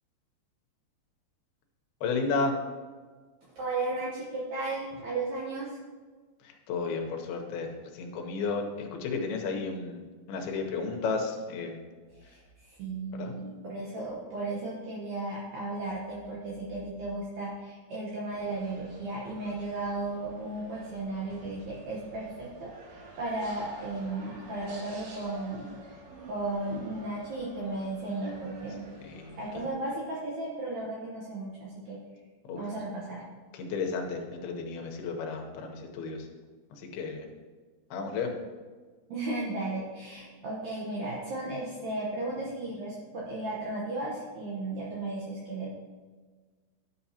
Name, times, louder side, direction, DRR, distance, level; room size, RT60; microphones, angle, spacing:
voice 1, 2.0-2.5 6.4-10.0 10.3-11.8 13.1-13.3 29.0-29.7 32.5-32.6 33.5-36.3 36.7-37.3 37.9-38.3, left 4 dB, 75° left, 3 dB, 2.6 m, -33 dB
voice 2, 3.5-5.8 12.1-26.0 26.3-28.9 29.4-32.0 32.5-33.2 39.1-45.7, right 2 dB, 80° right, -5 dB, 1.6 m, -35 dB
sound 1, 18.3-29.7, right 2 dB, 60° right, 2.7 m, -49 dB
11.0 x 7.1 x 2.8 m, 1.4 s
omnidirectional pair, 4.9 m